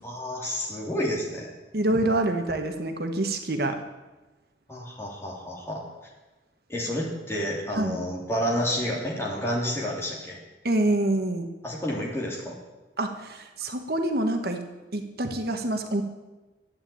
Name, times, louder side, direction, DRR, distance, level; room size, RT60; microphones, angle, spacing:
voice 1, 0.0-1.5 4.7-5.8 6.7-10.4 11.6-12.5, equal, 15° left, -4 dB, 3.2 m, -30 dB
voice 2, 1.7-3.8 7.7-8.0 10.6-11.5 13.0-14.6 14.9-16.0, right 1 dB, 60° right, 5 dB, 1.3 m, -26 dB
12.0 x 8.9 x 8.7 m, 1.1 s
head